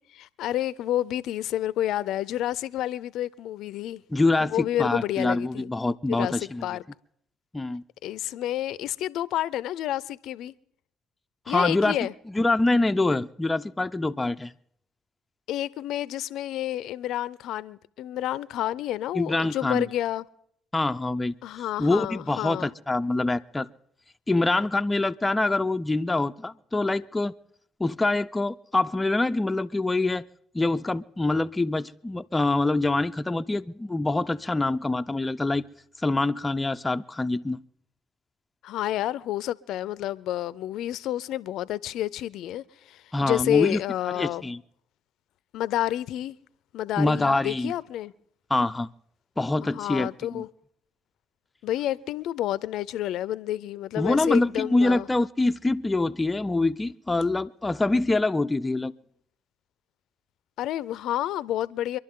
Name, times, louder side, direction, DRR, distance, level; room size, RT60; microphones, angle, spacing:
voice 1, 0.1-4.0 4.4-5.7 6.1-6.8 8.0-10.5 11.5-12.1 15.5-20.2 21.4-22.7 38.6-44.4 45.5-46.4 46.7-48.1 49.6-50.5 51.6-55.1 60.6-62.0, left 13 dB, 75° left, 0.5 m, -29 dB
voice 2, 4.1-6.7 7.5-7.8 11.5-12.0 12.3-14.5 19.1-19.9 20.7-21.3 21.8-23.7 24.3-27.3 27.8-30.3 30.5-35.7 36.0-37.6 43.1-43.8 44.2-44.6 47.0-47.7 48.5-48.9 49.4-50.4 54.0-58.9, left 2 dB, 20° left, 0.5 m, -25 dB
25.5 x 11.5 x 3.7 m
supercardioid pair, 60°, 0 cm